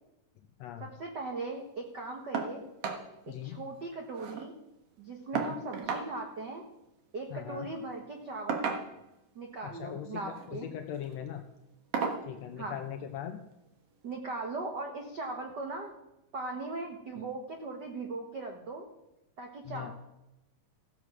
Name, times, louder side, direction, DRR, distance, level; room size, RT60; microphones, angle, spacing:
voice 1, 0.8-2.6 3.3-4.5 5.0-6.6 7.1-8.7 9.3-10.7 12.6-12.8 14.0-15.9 16.3-18.9 19.4-19.9, right 3 dB, 85° right, 3 dB, 0.9 m, -39 dB
sound 1, 2.3-2.5 2.8-3.0 3.4-3.5 3.8-4.5 5.3-6.1 7.3-7.5 8.5-9.2 10.2-10.5 11.0-11.1 11.9-12.3 13.5-13.6 14.1-14.2, right 5 dB, 55° right, 2.0 m, -34 dB
voice 2, 3.3-3.6 5.3-5.5 7.3-7.7 9.6-10.2 10.5-11.4 12.2-13.4 19.6-19.9, left 10 dB, 80° left, 6 dB, 1.5 m, -40 dB
15.0 x 7.6 x 6.1 m, 0.93 s
omnidirectional pair, 3.9 m